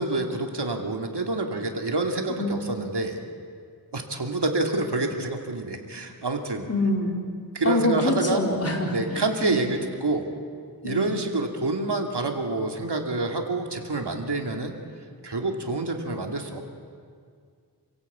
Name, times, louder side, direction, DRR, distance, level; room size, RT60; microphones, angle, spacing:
voice 1, 0.0-3.2 3.9-6.7 7.5-8.4 8.9-10.3 10.8-14.7 15.2-16.6, right 2 dB, 75° right, 3 dB, 2.6 m, -27 dB
voice 2, 6.7-7.2 7.6-9.6 10.8-11.2, left 1 dB, 35° left, 0 dB, 4.6 m, -25 dB
28.0 x 16.5 x 8.5 m, 2.1 s
wide cardioid pair, 50°, 40 cm